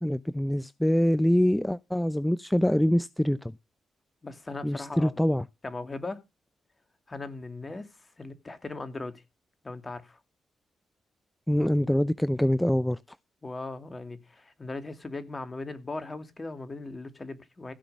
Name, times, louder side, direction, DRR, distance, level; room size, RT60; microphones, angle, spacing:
voice 1, 0.0-3.5 4.6-5.4 11.5-13.0, equal, 5° left, 0.6 m, -24 dB
voice 2, 4.2-5.1 5.6-6.2 7.1-7.9 8.2-9.2 9.6-10.2 13.4-17.7, left 3 dB, 30° left, 2.6 m, -38 dB
15.5 x 6.0 x 6.7 m
supercardioid pair, 45°, 0 cm